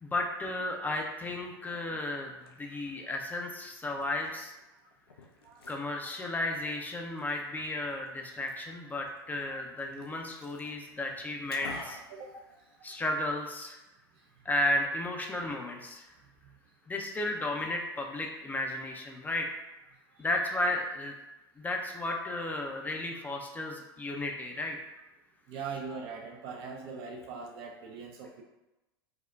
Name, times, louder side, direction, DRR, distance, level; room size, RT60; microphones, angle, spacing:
voice 1, 0.0-2.3 2.6-4.5 5.7-12.0 12.8-13.8 14.5-16.0 16.9-19.5 20.2-21.1 21.6-24.8, left 1 dB, 15° left, 1 dB, 0.4 m, -33 dB
Liquid, 2.1-13.1, left 3 dB, 75° left, 0.5 m, -52 dB
voice 2, 25.5-28.4, right 5 dB, 45° right, 1 dB, 0.4 m, -41 dB
4.7 x 2.1 x 2.3 m, 1.0 s
figure-of-eight pair, 85°, 13 cm